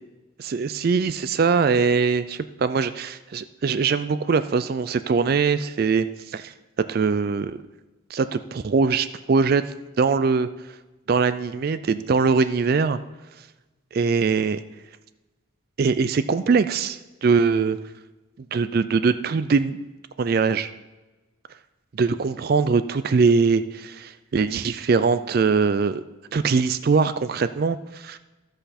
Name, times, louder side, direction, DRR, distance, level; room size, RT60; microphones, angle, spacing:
voice 1, 0.4-6.5 6.9-7.6 8.1-9.6 10.0-10.5 11.1-13.0 13.9-14.6 15.8-17.8 18.5-19.8 20.2-20.7 21.9-26.0 26.3-28.2, right 5 dB, 45° right, 12 dB, 0.3 m, -22 dB
13.0 x 7.9 x 4.2 m, 1.1 s
head